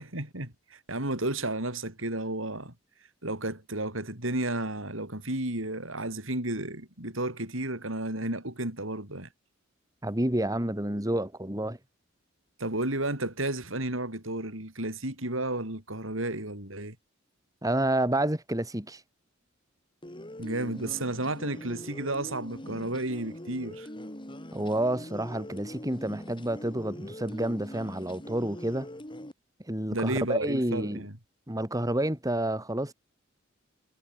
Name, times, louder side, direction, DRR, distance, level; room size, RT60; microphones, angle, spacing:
voice 1, 0.0-2.7 3.2-9.3 12.6-17.0 20.4-23.9 29.9-31.1, right 1 dB, 75° right, 7.7 m, -32 dB
voice 2, 10.0-11.8 17.6-19.0 24.5-28.9 29.7-31.0 31.5-32.9, right 1 dB, 15° right, 3.4 m, -29 dB
sound 1, 20.0-29.3, left 1 dB, 25° left, 4.1 m, -43 dB
head